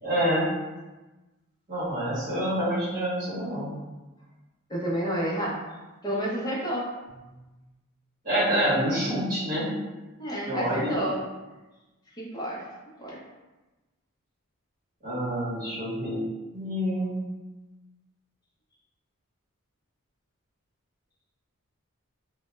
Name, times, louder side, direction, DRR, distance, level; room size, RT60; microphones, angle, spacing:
voice 1, 0.0-0.5 1.7-3.7 8.2-9.6 10.5-11.0 15.0-16.2 16.5-17.2, equal, 40° right, -10 dB, 1.0 m, -27 dB
voice 2, 4.7-5.6 6.0-6.9 10.2-11.2 12.2-12.6 13.0-13.2, equal, 20° left, -6 dB, 0.5 m, -30 dB
2.1 x 2.1 x 3.0 m, 1.1 s
head